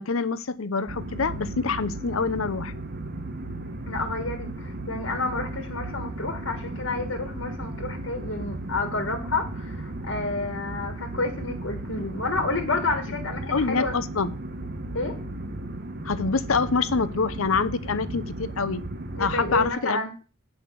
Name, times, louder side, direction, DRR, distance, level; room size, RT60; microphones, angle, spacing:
voice 1, 0.0-2.7 13.5-14.3 16.0-18.8 19.2-20.2, left 4 dB, 80° left, 0.8 m, -26 dB
sound 1, 0.9-19.7, right 2 dB, 50° right, 1.1 m, -35 dB
voice 2, 3.9-13.9 14.9-15.1 19.1-20.1, left 3 dB, 65° left, 1.6 m, -30 dB
8.6 x 5.7 x 6.9 m
head